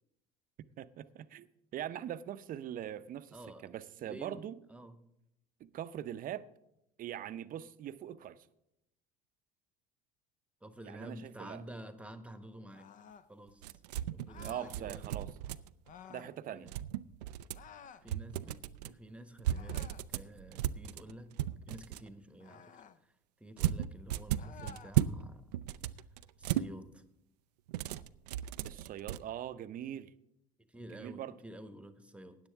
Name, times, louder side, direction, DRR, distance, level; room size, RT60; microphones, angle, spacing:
voice 1, 0.8-4.6 5.6-6.5 7.0-8.5 10.8-11.6 14.4-15.3 16.1-16.7 28.6-30.1 30.9-31.4, right 11 dB, 45° right, 0.6 m, -42 dB
voice 2, 3.3-3.7 4.0-4.4 4.7-5.0 10.6-12.9 13.3-13.7 14.1-15.2 16.5-16.8 18.0-21.3 21.7-23.1 23.4-25.6 26.4-27.0 30.7-32.4, right 1 dB, 5° right, 1.1 m, -50 dB
sound 1, 12.7-13.3 14.3-14.8 15.8-16.4 17.5-18.1 19.5-20.1 22.4-23.0 24.4-25.0, left 8 dB, 40° left, 0.7 m, -53 dB
sound 2, 13.6-15.9 16.7-17.7 18.1-18.9 19.4-22.1 23.6-25.2 25.5-26.7 27.7-29.2, right 12 dB, 85° right, 0.4 m, -35 dB
16.5 x 9.6 x 3.4 m
hypercardioid pair, 80°, 20 cm